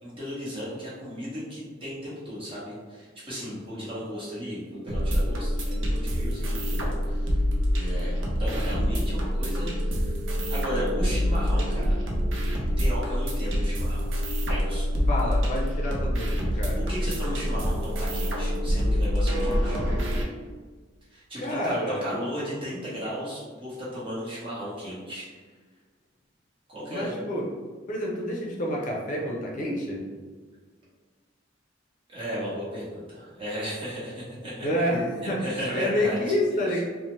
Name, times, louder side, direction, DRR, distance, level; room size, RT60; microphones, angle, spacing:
voice 1, 0.0-7.4 7.7-10.1 10.5-12.0 12.8-14.1 14.5-14.9 16.5-19.8 21.1-25.3 26.7-27.1 32.1-34.7 35.4-36.3, equal, 30° right, -8 dB, 1.0 m, -35 dB
voice 2, 3.7-4.0 15.1-16.9 21.4-22.2 26.9-27.4 27.9-30.0 34.6-35.4 35.7-36.8, left 1 dB, 45° left, -2 dB, 0.5 m, -28 dB
sound 1, 4.9-20.2, equal, 80° right, 0.6 m, -26 dB
2.7 x 2.0 x 3.1 m, 1.4 s
head